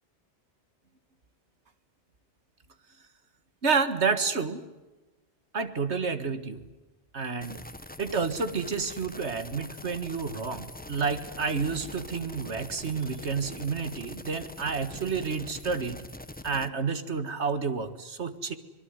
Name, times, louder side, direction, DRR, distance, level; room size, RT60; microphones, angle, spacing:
voice 1, 3.6-4.7 5.5-6.6 7.1-7.6 8.0-16.0 16.4-18.5, right 5 dB, 85° right, 10 dB, 2.1 m, -30 dB
sound 1, 7.4-16.7, left 1 dB, 10° left, 0.9 m, -44 dB
24.5 x 22.0 x 9.7 m, 1.1 s
omnidirectional pair, 1.1 m